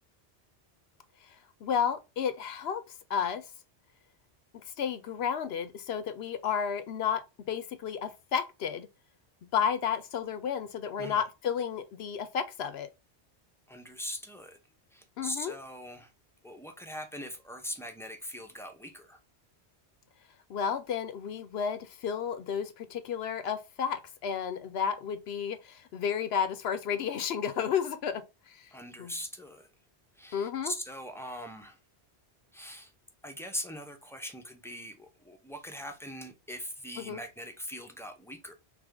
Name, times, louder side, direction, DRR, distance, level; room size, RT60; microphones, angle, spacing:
voice 1, 1.6-2.8 3.1-3.4 4.5-7.2 7.5-8.9 9.5-12.9 15.2-15.5 20.5-28.7 29.0-29.1 30.3-30.7 37.0-37.2, left 7 dB, 70° left, 0.8 m, -32 dB
voice 2, 13.7-14.6 14.9-16.1 16.4-19.2 28.7-29.7 30.1-31.8 32.5-32.9 33.2-38.5, equal, 5° left, 0.5 m, -41 dB
3.4 x 3.3 x 3.6 m
omnidirectional pair, 1.2 m